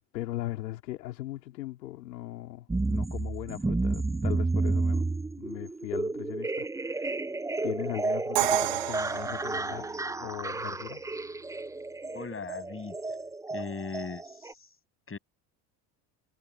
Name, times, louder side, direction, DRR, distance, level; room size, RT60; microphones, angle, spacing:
voice 1, 0.1-5.1 5.4-6.9 7.6-9.9 10.2-11.0, left 15 dB, 90° left, 3.2 m, -39 dB
sound 1, 2.7-14.5, right 3 dB, 5° right, 0.5 m, -31 dB
Crash cymbal, 8.3-10.3, right 19 dB, 55° right, 0.9 m, -31 dB
voice 2, 12.1-12.9 13.5-14.7 15.1-15.2, left 5 dB, 25° left, 7.7 m, -39 dB
hypercardioid pair, 80°, 49 cm